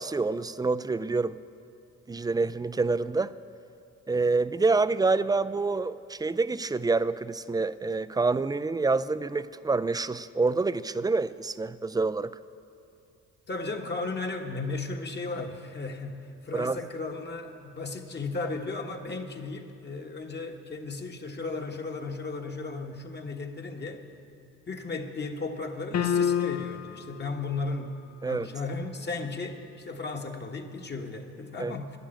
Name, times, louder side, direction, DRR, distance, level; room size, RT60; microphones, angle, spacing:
voice 1, 0.0-1.4 2.1-3.3 4.1-12.4 16.5-16.8 28.2-28.5 31.6-31.7, right 3 dB, 15° right, 15 dB, 0.3 m, -27 dB
voice 2, 13.5-24.0 24.7-32.0, left 3 dB, 35° left, 3 dB, 1.4 m, -35 dB
sound 1, 25.9-27.0, left 8 dB, 60° left, 0.7 m, -26 dB
12.0 x 10.0 x 9.0 m, 2.5 s
cardioid pair, 90°, 30 cm